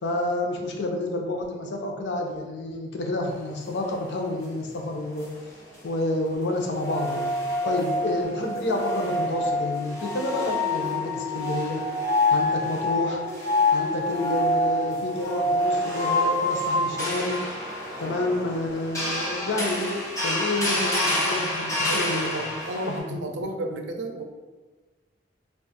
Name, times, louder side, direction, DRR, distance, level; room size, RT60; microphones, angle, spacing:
voice 1, 0.0-5.3 5.8-7.3 7.7-11.8 12.3-13.2 13.7-17.4 18.0-22.6 22.9-23.2, left 2 dB, 85° left, 2 dB, 0.5 m, -29 dB
sound 1, 5.2-5.3 6.7-23.0, left 1 dB, 20° left, 1.2 m, -27 dB
voice 2, 22.1-24.2, right 2 dB, 85° right, 4 dB, 0.4 m, -33 dB
2.4 x 2.3 x 4.0 m, 1.3 s
head